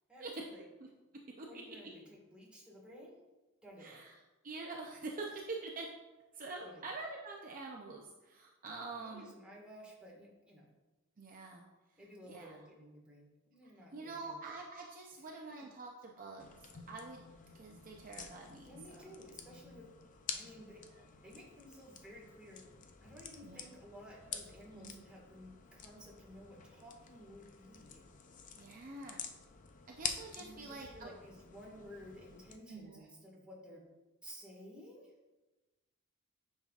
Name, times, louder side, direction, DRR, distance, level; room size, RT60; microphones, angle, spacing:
voice 1, 0.1-0.6 1.4-3.2 3.6-4.0 6.6-6.9 9.0-10.6 12.0-14.4 15.3-15.4 18.6-19.9 20.3-20.8 21.2-22.7 23.0-28.0 30.4-33.8 34.2-35.1, equal, 5° right, -4 dB, 1.7 m, -54 dB
voice 2, 1.1-1.5 3.8-4.2 4.4-5.9 6.3-9.3 11.2-11.6 12.3-12.6 13.9-17.2 17.5-19.1 20.9-21.0 23.4-23.6 24.7-25.0 28.6-29.2 29.9-31.1 32.7-33.1, right 3 dB, 40° right, 0 dB, 0.6 m, -46 dB
sound 1, 16.4-32.6, left 6 dB, 35° left, 0.5 m, -48 dB
9.1 x 5.4 x 2.4 m, 1.1 s
head